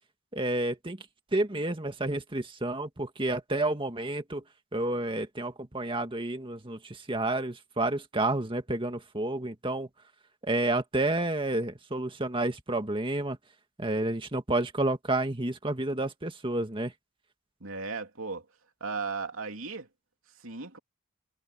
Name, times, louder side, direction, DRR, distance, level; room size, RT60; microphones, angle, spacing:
voice 1, 0.3-1.0 1.3-4.4 4.7-9.9 10.4-13.4 13.8-16.9, right 2 dB, 25° right, 2.0 m, -30 dB
voice 2, 17.6-18.4 18.8-19.9 20.4-20.8, right 4 dB, 70° right, 3.1 m, -36 dB
head